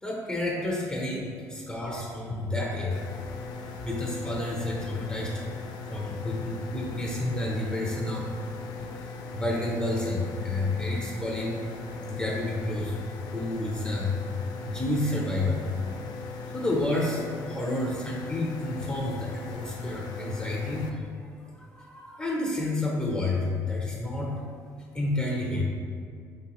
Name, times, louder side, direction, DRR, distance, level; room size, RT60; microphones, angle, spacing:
voice 1, 0.0-3.0 3.8-5.5 5.9-8.3 9.0-11.5 12.0-13.0 13.3-14.2 14.6-15.6 16.5-24.3 24.9-25.6, left 2 dB, 15° left, -3 dB, 0.7 m, -30 dB
sound 1, 2.9-20.9, left 4 dB, 75° left, 0.4 m, -39 dB
4.6 x 3.8 x 2.9 m, 2.2 s
cardioid pair, 100°, 7 cm